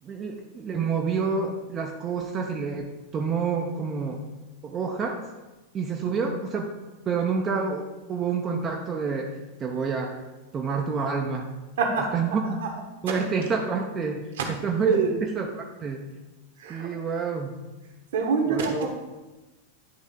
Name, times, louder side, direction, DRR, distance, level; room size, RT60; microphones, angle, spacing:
voice 1, 0.0-4.2 4.6-5.2 5.7-6.7 7.1-9.3 9.6-10.2 10.5-11.5 12.1-12.6 13.0-16.1 16.7-17.5 18.5-18.9, right 5 dB, 25° right, 1 dB, 0.6 m, -28 dB
voice 2, 11.8-12.2 12.6-12.7 14.4-14.5 14.8-15.1 16.6-16.9 18.1-18.9, right 5 dB, 60° right, 2 dB, 1.2 m, -24 dB
10.5 x 3.5 x 3.7 m, 1.1 s
figure-of-eight pair, 90°, 0 cm